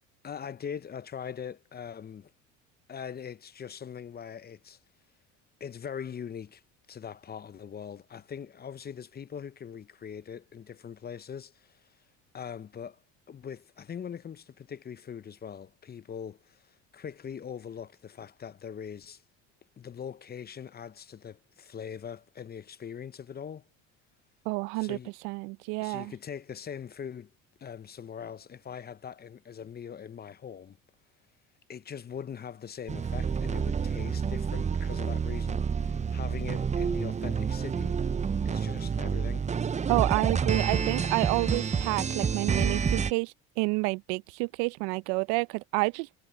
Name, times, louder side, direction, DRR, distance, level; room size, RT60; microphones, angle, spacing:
voice 1, 0.2-2.3 2.9-4.8 5.6-6.6 6.9-11.9 12.3-13.0 13.3-19.2 19.8-23.6 24.7-25.1 25.8-27.3 27.6-30.8 31.7-38.0 38.4-39.5, left 7 dB, 25° left, 0.7 m, -41 dB
voice 2, 24.5-25.0 25.2-26.1 39.9-46.2, right 28 dB, 75° right, 0.7 m, -29 dB
sound 1, 32.9-43.1, right 6 dB, 20° right, 0.6 m, -29 dB
supercardioid pair, 80°, 35 cm